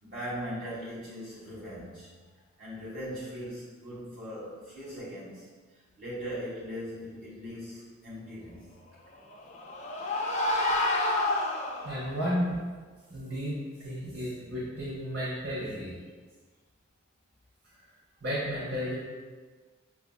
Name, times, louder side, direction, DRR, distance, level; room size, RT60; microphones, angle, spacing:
voice 1, 0.0-2.2 2.6-8.6, equal, 45° right, -11 dB, 1.3 m, -40 dB
sound 1, 9.2-12.2, left 2 dB, 35° left, 0.4 m, -29 dB
voice 2, 11.8-12.6 13.1-13.5 13.8-15.9 18.2-18.9, equal, 70° right, -9 dB, 1.0 m, -32 dB
5.9 x 2.7 x 2.2 m, 1.4 s
head